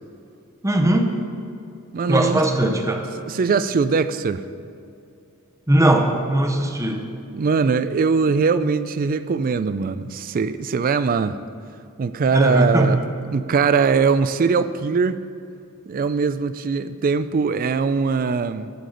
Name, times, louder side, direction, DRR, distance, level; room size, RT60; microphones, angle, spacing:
voice 1, 0.6-1.1 2.1-3.1 5.7-7.0 12.3-13.0, right 1 dB, 15° right, 4 dB, 0.7 m, -19 dB
voice 2, 1.9-2.4 3.3-4.4 7.3-11.4 12.0-13.0 13.3-15.2 15.9-18.7, right 5 dB, 40° right, 13 dB, 0.3 m, -21 dB
12.5 x 8.4 x 3.9 m, 2.5 s
head